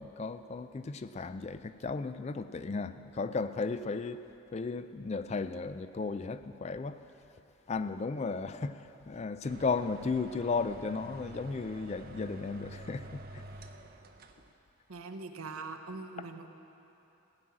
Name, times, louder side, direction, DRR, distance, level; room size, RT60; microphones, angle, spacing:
voice 1, 0.0-7.1 7.7-13.4, left 4 dB, 30° left, 11 dB, 0.3 m, -35 dB
sound 1, 9.4-14.5, right 1 dB, 45° right, 0.6 m, -48 dB
voice 2, 14.9-16.5, right 3 dB, 90° right, 6 dB, 0.9 m, -42 dB
16.0 x 6.2 x 8.5 m, 3.0 s
head